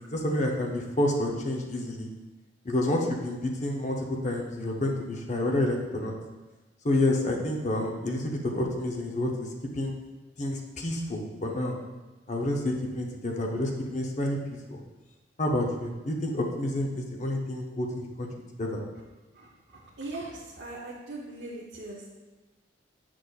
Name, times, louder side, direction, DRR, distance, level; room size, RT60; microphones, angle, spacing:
voice 1, 0.1-2.1 2.6-6.1 6.8-9.5 9.7-9.9 10.4-11.8 12.3-14.8 15.4-18.3 18.6-18.8, left 1 dB, 40° left, 1 dB, 0.7 m, -29 dB
voice 2, 20.0-20.3 20.6-22.1, right 2 dB, 70° right, -5 dB, 0.7 m, -39 dB
6.6 x 6.1 x 2.4 m, 1.2 s
head